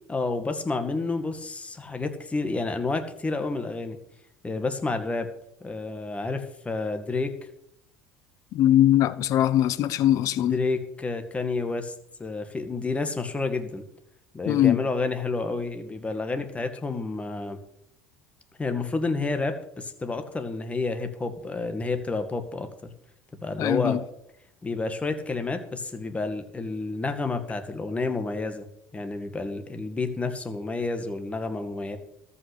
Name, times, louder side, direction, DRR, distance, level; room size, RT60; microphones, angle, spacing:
voice 1, 0.1-4.0 4.4-5.3 5.6-7.3 9.8-9.9 10.2-11.9 12.2-13.8 14.3-17.6 18.6-22.7 23.4-24.0 24.6-28.7 28.9-32.0, left 3 dB, 20° left, 2.0 m, -30 dB
voice 2, 8.5-10.6 14.5-14.8 23.6-24.0, left 12 dB, 55° left, 0.8 m, -21 dB
14.0 x 5.7 x 8.5 m
hypercardioid pair, 85°, 7 cm